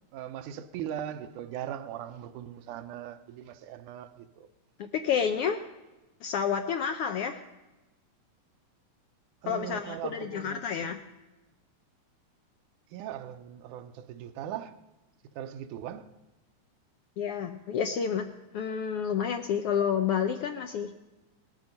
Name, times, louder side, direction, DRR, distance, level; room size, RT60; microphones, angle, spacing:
voice 1, 0.1-4.5 9.4-10.9 12.9-14.8 15.4-16.1, right 10 dB, 85° right, 2.4 m, -39 dB
voice 2, 4.8-5.6 6.2-7.4 9.5-11.0 17.2-18.3 18.5-20.9, left 7 dB, 75° left, 1.3 m, -29 dB
18.5 x 13.5 x 5.3 m
omnidirectional pair, 3.5 m